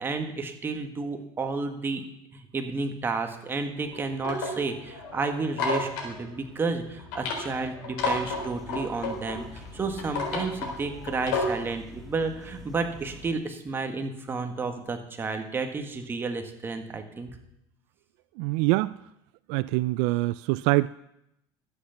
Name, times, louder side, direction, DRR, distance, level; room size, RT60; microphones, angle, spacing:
voice 1, 0.0-2.0 2.3-17.3, right 4 dB, 20° right, 5 dB, 1.7 m, -31 dB
sound 1, 3.8-11.7, left 3 dB, 85° left, 3.9 m, -33 dB
sound 2, 8.0-13.3, left 1 dB, ahead, 2.2 m, -46 dB
voice 2, 18.4-18.9 19.5-20.9, right 21 dB, 75° right, 16 dB, 0.4 m, -24 dB
13.0 x 8.1 x 7.2 m, 0.80 s
supercardioid pair, 130°, 10 cm